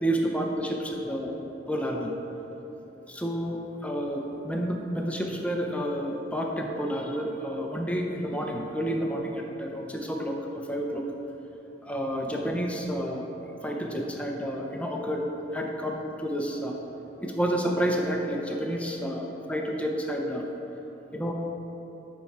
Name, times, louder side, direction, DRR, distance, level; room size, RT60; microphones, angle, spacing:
voice 1, 0.0-1.3 1.7-2.1 3.1-11.1 11.8-13.3 13.6-15.3 15.5-16.8 17.2-20.5 21.1-21.3, equal, 10° left, 0 dB, 0.6 m, -30 dB
11.5 x 4.7 x 4.2 m, 3.0 s
head